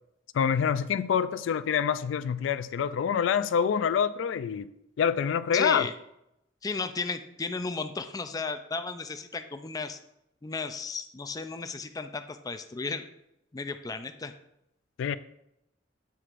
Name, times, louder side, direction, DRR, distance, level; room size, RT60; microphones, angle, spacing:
voice 1, 0.3-4.7 5.0-5.9 15.0-15.2, left 7 dB, 85° left, 0.3 m, -26 dB
voice 2, 5.5-5.9 6.6-10.0 10.4-13.0 13.5-14.3, left 4 dB, 20° left, 0.4 m, -34 dB
8.1 x 7.5 x 2.5 m
head